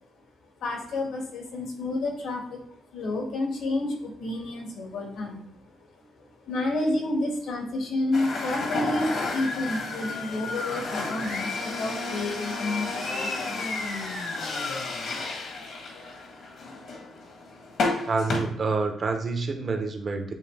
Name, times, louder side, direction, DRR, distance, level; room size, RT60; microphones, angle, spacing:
voice 1, 0.6-2.6 2.9-5.5 6.5-14.0, left 2 dB, 80° left, 0 dB, 2.1 m, -30 dB
sound 1, 8.1-18.4, left 3 dB, 65° left, 1.6 m, -32 dB
voice 2, 18.1-20.3, right 4 dB, 45° right, 5 dB, 1.0 m, -27 dB
9.1 x 3.2 x 3.6 m, 0.71 s
cardioid pair, 90°, 0 cm